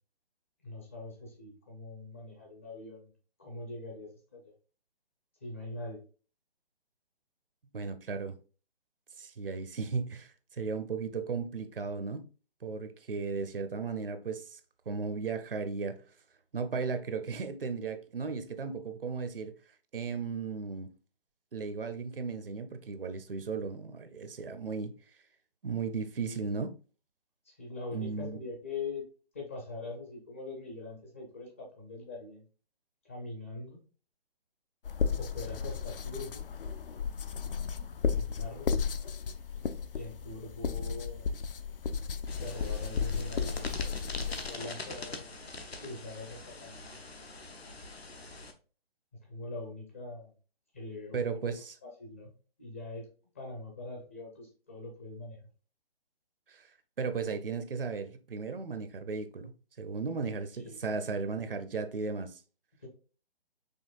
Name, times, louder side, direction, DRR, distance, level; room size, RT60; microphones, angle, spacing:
voice 1, 0.6-3.1 3.4-4.4 5.4-6.0 27.5-29.0 29.3-32.4 33.1-33.8 35.2-36.4 38.1-38.7 39.9-41.3 42.4-45.3 45.8-46.9 49.3-50.3 50.7-51.2 51.8-52.3 52.6-53.1 53.3-55.4 60.6-60.8, left 2 dB, 15° left, 0.5 m, -43 dB
voice 2, 7.7-8.4 9.2-12.3 12.6-14.6 14.9-16.0 16.5-19.5 19.9-20.9 21.5-24.9 25.6-26.7 27.9-28.4 51.1-51.8 56.5-56.7 57.0-59.5 59.8-62.4, right 5 dB, 65° right, 0.7 m, -35 dB
sound 1, 34.8-44.6, left 6 dB, 65° left, 0.5 m, -34 dB
sound 2, 42.3-48.5, left 3 dB, 85° left, 0.9 m, -43 dB
5.4 x 3.5 x 2.4 m
figure-of-eight pair, 140°, 30 cm